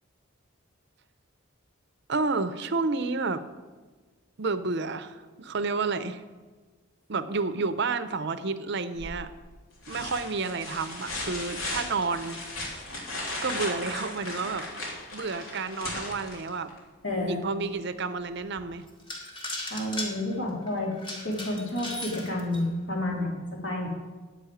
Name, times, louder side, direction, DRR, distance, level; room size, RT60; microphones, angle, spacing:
voice 1, 2.1-3.4 4.4-6.2 7.1-9.3 9.9-12.4 13.4-16.7 17.2-18.9, right 4 dB, 55° right, 12 dB, 0.7 m, -30 dB
sound 1, 9.0-9.4 9.8-16.8 18.6-18.7, left 2 dB, 75° left, 3.4 m, -36 dB
sound 2, 11.9-15.3 15.9-16.0 16.5-16.6 17.1-17.2 18.4-18.5 18.9-22.7, left 1 dB, 25° left, 2.0 m, -39 dB
voice 2, 17.0-17.4 19.7-20.9 21.2-23.9, left 1 dB, 60° left, -2 dB, 3.3 m, -30 dB
9.8 x 8.2 x 9.2 m, 1.4 s
head